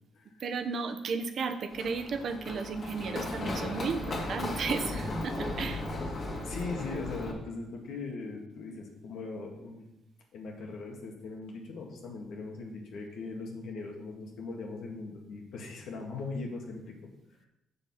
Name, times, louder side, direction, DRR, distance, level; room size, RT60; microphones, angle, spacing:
voice 1, 0.4-5.8, right 5 dB, 60° right, 7 dB, 1.0 m, -34 dB
Run, 1.7-7.3, left 2 dB, 50° left, 2.2 m, -36 dB
voice 2, 6.4-9.9 10.3-17.1, left 3 dB, 75° left, 1 dB, 2.0 m, -40 dB
7.1 x 6.9 x 5.6 m, 0.89 s
cardioid pair, 90°, 0 cm